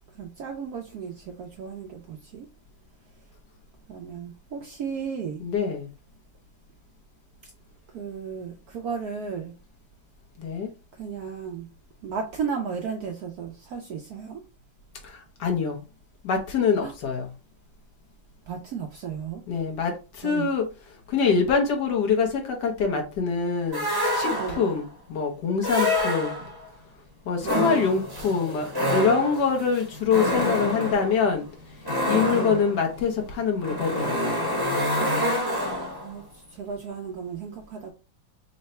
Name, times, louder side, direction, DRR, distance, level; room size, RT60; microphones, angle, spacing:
voice 1, 0.1-2.5 3.9-5.4 7.9-9.5 11.0-11.7 12.0-14.4 16.8-16.9 18.5-19.4 20.2-20.5 24.3-24.8 27.4-27.7 32.3-32.6 34.9-35.1 36.0-37.9, right 6 dB, 70° right, 0.9 m, -34 dB
voice 2, 5.4-5.9 10.4-10.7 15.0-15.8 16.2-17.3 19.5-20.7 21.1-23.9 24.1-26.4 27.3-31.4 32.1-34.5, left 5 dB, 65° left, 1.4 m, -25 dB
sound 1, 23.7-24.8 25.6-26.7 27.4-36.1, left 1 dB, 15° right, 0.9 m, -27 dB
3.8 x 2.2 x 4.2 m
omnidirectional pair, 2.1 m